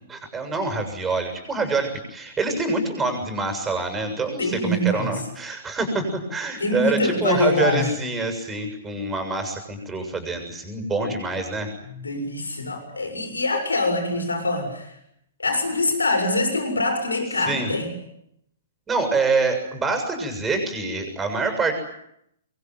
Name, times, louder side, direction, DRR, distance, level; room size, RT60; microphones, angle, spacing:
voice 1, 0.1-11.7 17.5-17.7 18.9-21.7, right 3 dB, 15° right, 6 dB, 7.1 m, -26 dB
voice 2, 4.4-5.2 6.6-7.9 11.0-11.1 11.8-15.0 15.4-17.9, left 2 dB, 75° left, 5 dB, 6.9 m, -24 dB
25.5 x 22.5 x 9.4 m, 0.77 s
figure-of-eight pair, 115°, 0 cm